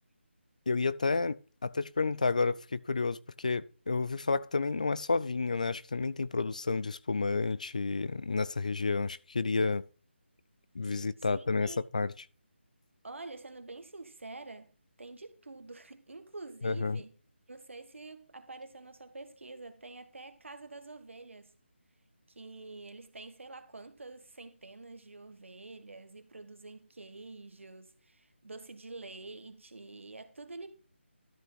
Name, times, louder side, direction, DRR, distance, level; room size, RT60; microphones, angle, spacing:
voice 1, 0.7-1.4 1.6-9.8 10.7-12.1 16.6-17.0, left 4 dB, 40° left, 0.3 m, -30 dB
voice 2, 10.8-11.8 13.0-14.7 15.0-17.1 17.5-21.5 22.3-30.7, right 3 dB, 80° right, 1.6 m, -47 dB
12.5 x 5.4 x 4.0 m
figure-of-eight pair, 175°, 7 cm